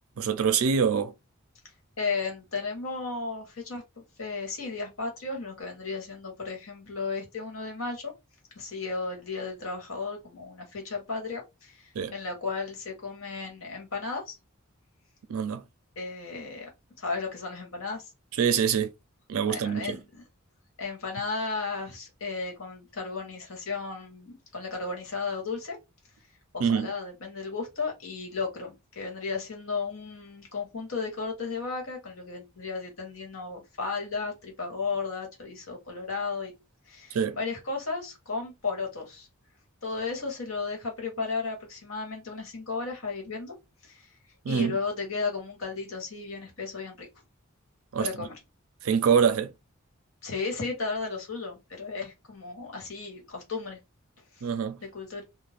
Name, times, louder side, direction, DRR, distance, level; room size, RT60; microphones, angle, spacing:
voice 1, 0.2-1.1 11.9-12.1 15.3-15.6 18.3-18.9 19.3-20.0 26.6-26.9 37.1-37.4 44.4-44.8 47.9-48.3 48.8-49.5 54.4-54.8, right 7 dB, 90° right, 0.4 m, -25 dB
voice 2, 2.0-8.1 8.5-14.4 16.0-16.7 17.0-18.1 19.5-20.2 20.8-25.8 26.5-36.5 36.9-39.3 39.8-43.6 43.8-44.1 44.5-47.1 48.0-48.3 50.2-53.8 54.3-54.5 54.9-55.2, left 4 dB, 75° left, 1.2 m, -34 dB
2.4 x 2.1 x 3.3 m
head